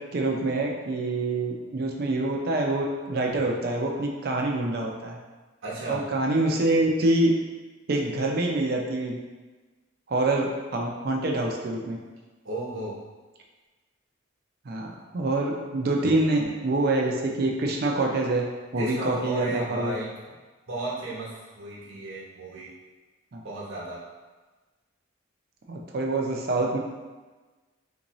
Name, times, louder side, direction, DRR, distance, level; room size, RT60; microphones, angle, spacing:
voice 1, 0.1-5.2 5.9-7.3 7.9-9.2 10.1-12.0 14.7-18.4 18.7-19.9 23.3-23.4 25.7-26.8, right 2 dB, 50° right, 0 dB, 0.4 m, -26 dB
voice 2, 5.6-6.0 12.4-13.0 18.8-20.1 20.7-22.7 23.4-24.0, right 2 dB, 90° right, -7 dB, 1.0 m, -34 dB
3.6 x 2.6 x 3.0 m, 1.3 s
head